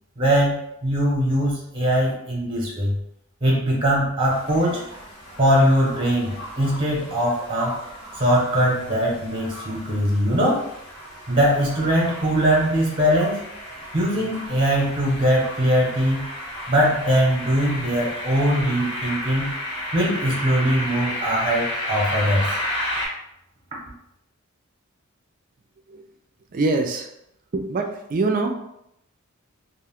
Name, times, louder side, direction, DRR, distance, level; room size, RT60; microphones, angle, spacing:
voice 1, 0.2-0.6 0.8-3.0 3.4-4.8 5.4-7.8 8.2-10.7 11.3-13.4 13.9-16.3 16.7-19.5 19.9-22.6, equal, 25° right, -3 dB, 0.8 m, -21 dB
sound 1, 4.2-23.1, left 1 dB, 55° left, 1.3 m, -33 dB
voice 2, 26.5-27.1 27.5-28.6, right 3 dB, 40° right, 5 dB, 0.4 m, -24 dB
2.5 x 2.3 x 3.5 m, 0.78 s
head